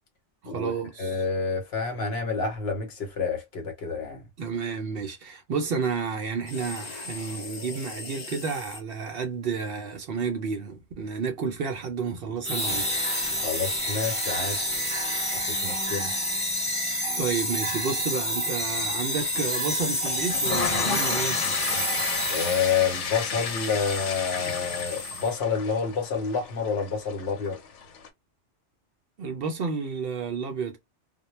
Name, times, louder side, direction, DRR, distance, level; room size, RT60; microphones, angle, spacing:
voice 1, 0.4-1.2 4.4-12.9 17.2-21.4 29.2-30.8, right 5 dB, 60° right, 0.7 m, -31 dB
voice 2, 1.0-4.2 13.4-14.6 15.3-16.1 22.2-27.6, left 5 dB, 60° left, 1.0 m, -28 dB
sound 1, 6.5-8.8 12.6-13.4 14.0-14.8 19.1-25.4, left 3 dB, 45° left, 0.5 m, -39 dB
sound 2, 12.4-23.0, equal, 5° left, 0.7 m, -28 dB
sound 3, 20.1-28.1, left 6 dB, 85° left, 0.9 m, -33 dB
2.2 x 2.1 x 3.0 m
omnidirectional pair, 1.2 m